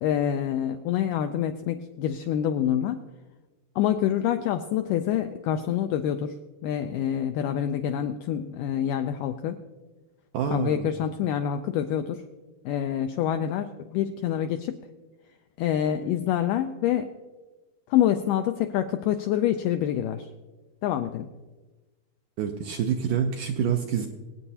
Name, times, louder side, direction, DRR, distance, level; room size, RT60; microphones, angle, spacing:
voice 1, 0.0-3.0 3.8-6.4 6.6-9.6 10.5-12.2 12.7-14.8 15.6-17.1 17.9-20.3 20.8-21.3, left 10 dB, 85° left, 7 dB, 1.9 m, -26 dB
voice 2, 10.3-10.9 22.4-24.1, right 7 dB, 80° right, 4 dB, 1.9 m, -27 dB
24.5 x 8.9 x 2.8 m, 1.2 s
omnidirectional pair, 4.4 m